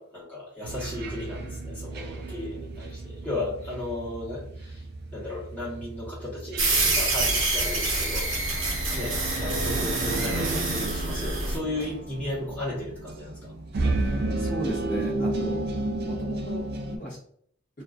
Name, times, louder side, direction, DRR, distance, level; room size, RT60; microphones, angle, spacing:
voice 1, 0.0-4.9 5.1-8.3 8.9-13.5 15.2-15.4, left 2 dB, 10° left, -9 dB, 0.9 m, -35 dB
sound 1, 0.6-17.0, right 2 dB, 50° right, 0.4 m, -33 dB
sound 2, 6.6-11.6, right 2 dB, 75° right, 0.8 m, -27 dB
voice 2, 14.0-15.6 16.0-17.2, equal, 40° left, -7 dB, 0.5 m, -36 dB
2.4 x 2.3 x 2.4 m, 0.63 s
head